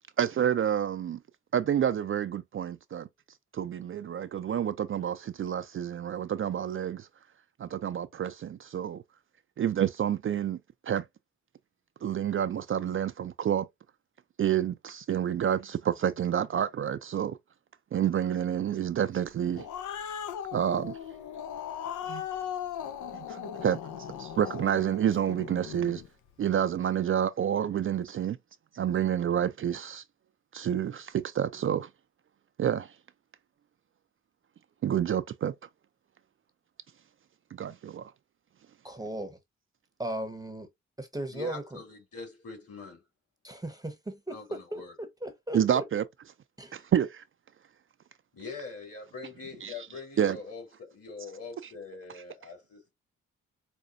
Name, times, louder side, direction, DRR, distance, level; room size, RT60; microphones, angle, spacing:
voice 1, 0.2-1.2 1.5-3.1 3.5-7.1 7.6-9.0 9.6-10.6 10.8-11.0 12.0-13.7 14.4-17.4 17.9-19.7 20.5-21.0 22.1-22.3 23.1-26.0 26.4-28.4 28.7-30.0 30.5-31.9 32.6-33.0 34.8-35.5 37.5-38.1 45.5-46.0 46.7-47.2 49.6-49.9 50.2-50.4, right 9 dB, 45° right, 0.4 m, -29 dB
Growling, 19.3-26.1, left 9 dB, 75° left, 0.6 m, -38 dB
voice 2, 38.8-39.4 40.0-40.7 41.0-41.8 43.4-45.8 46.6-46.8, right 1 dB, 10° right, 0.8 m, -37 dB
voice 3, 41.3-43.0 44.3-44.9 48.3-52.9, left 4 dB, 50° left, 2.6 m, -43 dB
5.1 x 2.2 x 2.5 m
supercardioid pair, 50°, 30 cm